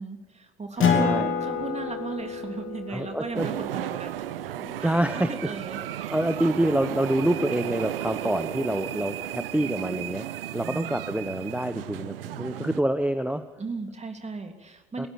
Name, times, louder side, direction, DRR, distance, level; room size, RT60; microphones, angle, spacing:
voice 1, 0.0-1.1 1.4-4.4 4.8-6.1 10.6-11.0 13.6-15.1, right 3 dB, 25° right, 5 dB, 3.2 m, -37 dB
Acoustic guitar, 0.8-5.8, left 6 dB, 45° left, 3.0 m, -29 dB
voice 2, 0.8-1.3 2.9-3.5 4.6-5.3 6.1-10.2 10.5-13.4 15.0-15.1, right 1 dB, 5° right, 10 dB, 1.0 m, -27 dB
sound 1, 3.3-12.8, right 13 dB, 75° right, 0.6 m, -34 dB
27.5 x 15.5 x 7.3 m, 1.0 s
figure-of-eight pair, 55°, 29 cm